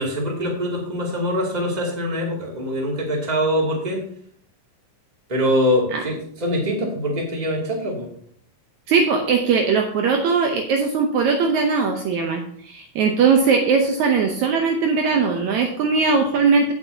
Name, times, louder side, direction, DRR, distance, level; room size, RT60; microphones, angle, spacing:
voice 1, 0.0-4.0 5.3-8.1, equal, 15° right, -2 dB, 2.3 m, -23 dB
voice 2, 8.9-16.7, right 5 dB, 70° right, 3 dB, 2.1 m, -20 dB
17.0 x 6.8 x 2.8 m, 0.62 s
omnidirectional pair, 3.7 m